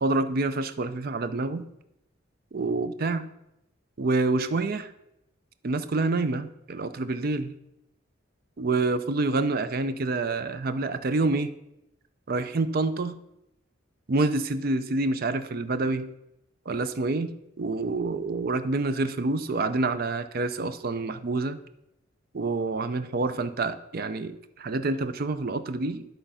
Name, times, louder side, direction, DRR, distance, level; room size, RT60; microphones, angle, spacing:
voice 1, 0.0-1.7 2.5-3.3 4.0-4.9 5.6-7.5 8.6-11.5 12.3-13.2 14.1-16.1 16.7-21.6 22.3-26.1, right 3 dB, 45° right, 11 dB, 0.5 m, -27 dB
11.0 x 3.9 x 5.5 m, 0.85 s
head